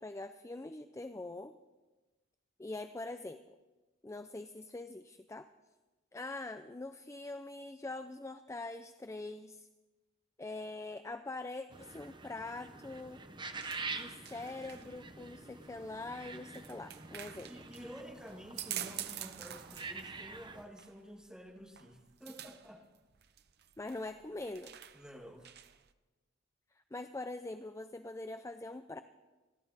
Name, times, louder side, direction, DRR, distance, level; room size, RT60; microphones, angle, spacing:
voice 1, 0.0-1.5 2.6-3.4 4.0-5.5 6.1-9.7 10.4-13.2 13.9-17.5 23.8-24.7 26.7-29.0, left 2 dB, 15° left, 9 dB, 0.4 m, -43 dB
sound 1, 11.7-20.6, right 4 dB, 25° right, 0.9 m, -46 dB
sound 2, 12.9-25.9, right 11 dB, 55° right, 0.7 m, -48 dB
voice 2, 17.4-22.8 24.9-25.5, equal, 5° right, 1 dB, 1.8 m, -51 dB
28.0 x 11.5 x 4.1 m, 1.2 s
head